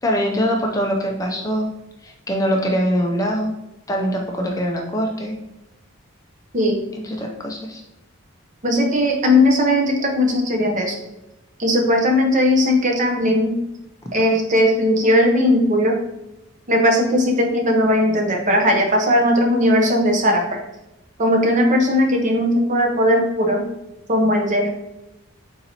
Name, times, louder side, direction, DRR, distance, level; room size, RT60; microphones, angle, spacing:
voice 1, 0.0-1.7 2.0-3.5 3.9-5.3 7.0-7.8, equal, 15° left, 1 dB, 0.4 m, -23 dB
voice 2, 8.6-11.0 11.6-13.5 14.1-16.0 16.7-20.6 21.2-23.6 24.1-24.7, left 1 dB, 35° right, 2 dB, 0.7 m, -18 dB
3.9 x 2.8 x 4.1 m, 0.94 s
head